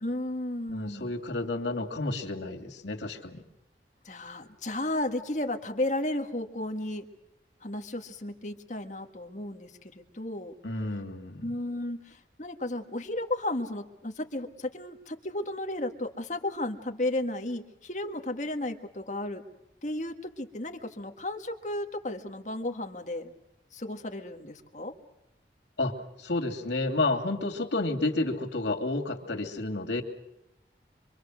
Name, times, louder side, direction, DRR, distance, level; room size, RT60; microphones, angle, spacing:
voice 1, 0.0-1.1 4.1-7.1 7.6-10.5 11.4-19.4 19.8-23.3 23.7-24.9, left 1 dB, 45° left, 5 dB, 1.8 m, -34 dB
voice 2, 0.7-3.4 10.6-11.5 25.8-30.0, left 2 dB, 90° left, 4 dB, 2.8 m, -31 dB
25.5 x 24.5 x 6.4 m, 0.89 s
head